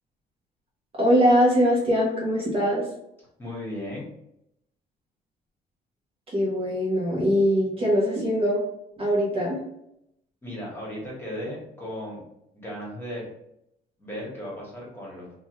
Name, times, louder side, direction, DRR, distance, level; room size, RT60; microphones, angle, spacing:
voice 1, 1.0-2.8 6.3-8.6 9.0-9.6, equal, 35° right, -4 dB, 1.0 m, -22 dB
voice 2, 3.4-4.0 10.4-12.2 12.5-13.2 14.0-15.3, equal, 15° left, -4 dB, 1.4 m, -36 dB
2.9 x 2.4 x 3.0 m, 0.79 s
cardioid pair, 110°, 17 cm